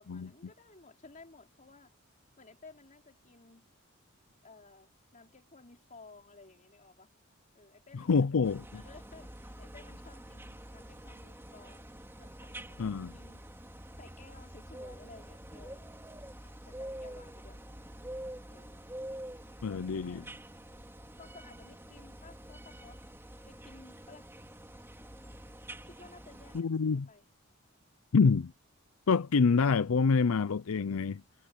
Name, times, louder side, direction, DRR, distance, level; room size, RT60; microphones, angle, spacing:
voice 1, 0.0-1.9 2.4-3.7 4.4-7.1 7.5-8.4 8.7-11.9 12.2-13.5 14.0-16.0 16.4-17.6 18.5-18.9 19.7-20.3 21.2-23.0 23.4-24.3 25.8-27.3, left 3 dB, 35° left, 4.3 m, -56 dB
voice 2, 8.1-8.6 12.8-13.1 19.6-20.2 26.5-27.1 28.1-28.5 29.1-31.2, left 5 dB, 70° left, 0.5 m, -26 dB
sound 1, 8.4-26.6, right 1 dB, 10° right, 3.1 m, -47 dB
head